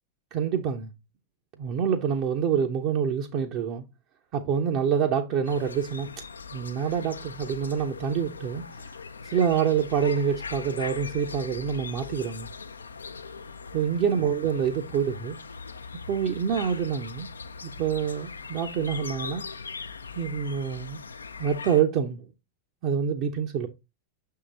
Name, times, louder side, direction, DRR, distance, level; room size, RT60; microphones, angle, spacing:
voice 1, 0.3-0.9 1.6-3.8 4.3-6.1 6.5-8.7 9.2-12.5 13.7-15.4 16.1-17.3 17.6-19.4 20.1-21.0 21.4-22.2 22.8-23.7, right 7 dB, 45° right, 0.6 m, -26 dB
sound 1, 5.4-21.8, left 5 dB, 75° left, 0.4 m, -40 dB
6.4 x 3.8 x 4.0 m
figure-of-eight pair, 90°, 0 cm